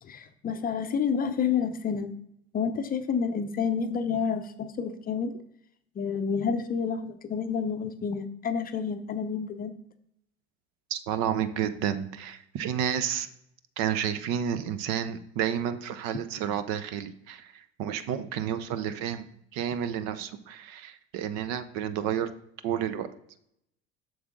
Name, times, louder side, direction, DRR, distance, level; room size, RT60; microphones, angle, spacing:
voice 1, 0.0-2.1 2.5-5.3 6.0-9.8, left 6 dB, 25° left, 8 dB, 0.6 m, -29 dB
voice 2, 10.9-13.3 13.8-19.2 19.5-22.3 22.6-23.1, right 9 dB, 50° right, 12 dB, 0.7 m, -30 dB
8.0 x 6.4 x 3.6 m, 0.72 s
figure-of-eight pair, 70°, 34 cm